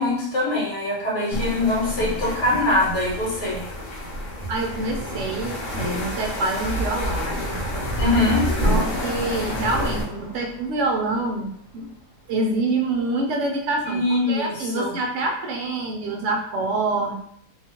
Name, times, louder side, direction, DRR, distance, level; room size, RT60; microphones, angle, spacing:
voice 1, 0.0-3.6 8.0-8.5 13.8-14.9, left 2 dB, 75° left, -5 dB, 1.5 m, -23 dB
sound 1, 1.3-10.0, equal, 55° left, 1.0 m, -28 dB
Car passing by, 2.2-13.8, equal, 20° right, 0.8 m, -40 dB
voice 2, 4.5-7.4 8.6-11.9 12.3-17.1, right 2 dB, 70° right, 1 dB, 0.7 m, -26 dB
2.8 x 2.3 x 2.8 m, 0.68 s
omnidirectional pair, 1.7 m